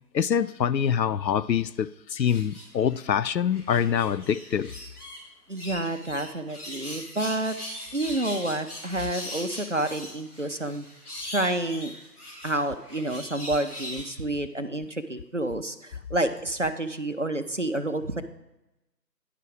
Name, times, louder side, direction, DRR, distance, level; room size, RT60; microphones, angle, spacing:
voice 1, 0.1-4.7, left 8 dB, 85° left, 0.5 m, -25 dB
sound 1, 2.3-3.0 3.5-5.2 5.6-14.0, left 1 dB, 60° left, 3.0 m, -40 dB
voice 2, 5.5-7.5 7.9-10.9 11.2-11.9 12.4-18.2, right 1 dB, 50° right, 0.5 m, -29 dB
10.0 x 5.9 x 4.7 m
figure-of-eight pair, 165°, 50 cm